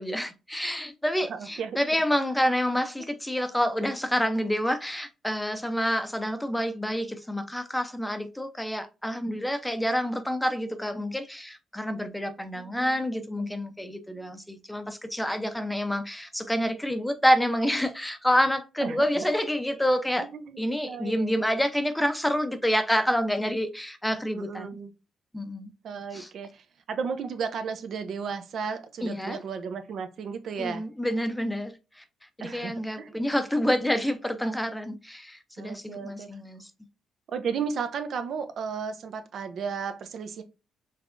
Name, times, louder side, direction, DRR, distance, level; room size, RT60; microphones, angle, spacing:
voice 1, 0.0-20.3 20.6-24.7 25.3-25.7 26.1-26.3 29.0-29.4 30.6-32.0 32.4-36.7, equal, 5° left, 0.7 m, -28 dB
voice 2, 1.3-1.8 12.5-13.5 18.8-19.3 20.2-21.3 24.3-24.9 25.8-30.8 32.4-33.3 35.6-36.3 37.3-40.4, right 6 dB, 60° right, 0.8 m, -34 dB
5.7 x 3.3 x 2.6 m
cardioid pair, 90°, 0 cm